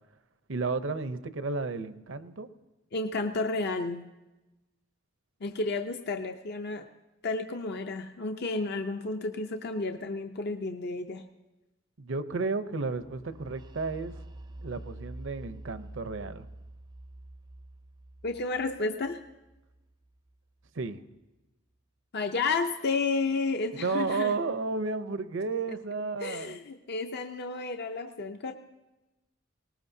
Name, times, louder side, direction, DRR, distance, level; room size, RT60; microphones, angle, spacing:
voice 1, 0.5-2.5 12.0-14.2 14.6-16.5 20.7-21.0 23.8-26.6, right 4 dB, 70° right, 11 dB, 0.7 m, -32 dB
voice 2, 2.9-4.1 5.4-6.9 7.2-11.2 18.2-19.2 22.1-24.3 26.2-28.5, left 3 dB, 55° left, 6 dB, 0.6 m, -31 dB
sound 1, 13.0-20.7, right 1 dB, 20° right, 0.5 m, -47 dB
20.0 x 19.0 x 2.7 m, 1.1 s
head